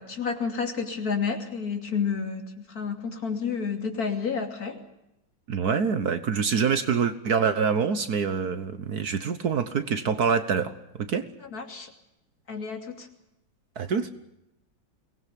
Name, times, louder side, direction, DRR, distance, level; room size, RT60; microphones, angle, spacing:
voice 1, 0.0-4.8 11.5-11.9 12.5-13.1, left 6 dB, 50° left, 4 dB, 3.4 m, -30 dB
voice 2, 5.5-11.3 13.8-14.1, right 6 dB, 55° right, 11 dB, 1.6 m, -25 dB
23.5 x 19.5 x 8.3 m, 0.88 s
omnidirectional pair, 2.0 m